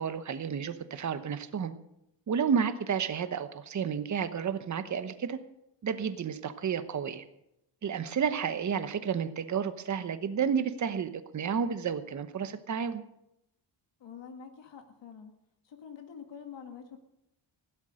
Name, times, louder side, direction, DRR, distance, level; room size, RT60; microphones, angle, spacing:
voice 1, 0.0-1.7 2.3-5.4 5.8-7.2 7.8-13.0, right 7 dB, 40° right, 11 dB, 1.0 m, -31 dB
voice 2, 14.0-15.4 15.6-17.0, left 7 dB, 70° left, 4 dB, 1.8 m, -46 dB
16.0 x 12.0 x 6.4 m, 0.84 s
wide cardioid pair, 160°, 45 cm